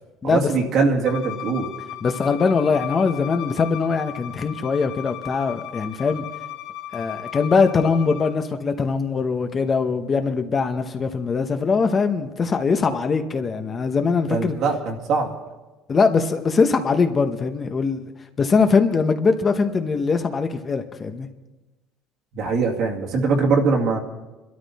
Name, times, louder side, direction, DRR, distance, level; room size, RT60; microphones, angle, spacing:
voice 1, 0.2-1.7 14.3-15.3 22.3-24.0, right 4 dB, 50° right, 1 dB, 2.2 m, -22 dB
Bowed string instrument, 1.0-8.3, left 12 dB, 85° left, 2.3 m, -36 dB
voice 2, 2.0-6.3 6.9-14.6 15.9-18.1 18.4-21.3, left 5 dB, 25° left, 7 dB, 0.9 m, -21 dB
25.0 x 12.5 x 4.2 m, 1.1 s
cardioid pair, 150°, 0 cm